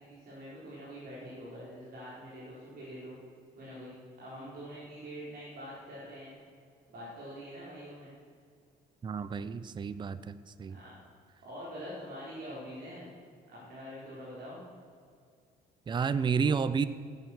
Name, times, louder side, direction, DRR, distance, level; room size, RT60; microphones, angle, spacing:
voice 1, 0.0-3.2 3.6-3.9 4.2-6.3 6.9-8.1 10.7-11.0 11.4-13.1 13.5-14.6, equal, 65° right, -7 dB, 4.6 m, -45 dB
voice 2, 9.0-10.8 15.9-16.9, right 6 dB, 25° right, 14 dB, 0.6 m, -30 dB
16.0 x 9.4 x 6.3 m, 2.3 s
cardioid pair, 110°, 17 cm